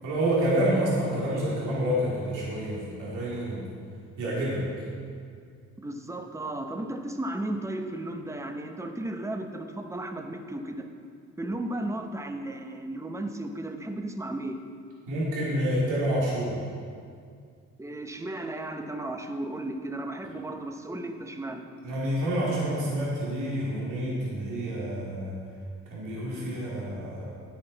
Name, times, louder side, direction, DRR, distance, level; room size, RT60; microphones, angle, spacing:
voice 1, 0.0-3.6 4.2-4.7 15.1-16.6 21.8-25.4 25.9-27.2, right 1 dB, 90° right, -6 dB, 2.5 m, -28 dB
voice 2, 5.8-10.9 11.4-14.7 17.8-21.7, right 1 dB, 10° right, 6 dB, 0.8 m, -34 dB
9.7 x 9.4 x 4.0 m, 2.2 s
cardioid pair, 90°, 30 cm